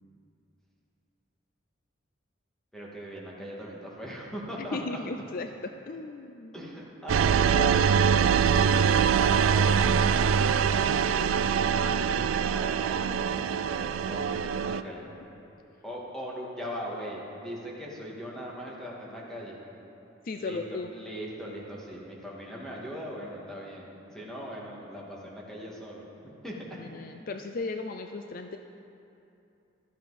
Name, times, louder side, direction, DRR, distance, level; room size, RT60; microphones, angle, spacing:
voice 1, 2.7-5.0 6.5-7.8 8.4-9.8 11.6-15.1 15.8-19.6 20.4-20.6 20.9-26.8, equal, 5° left, -4 dB, 2.2 m, -40 dB
voice 2, 4.6-6.6 20.2-20.9 26.8-28.6, left 3 dB, 45° left, 6 dB, 0.4 m, -36 dB
sound 1, 7.1-14.8, right 7 dB, 80° right, 0.4 m, -24 dB
15.0 x 12.5 x 4.3 m, 2.7 s
head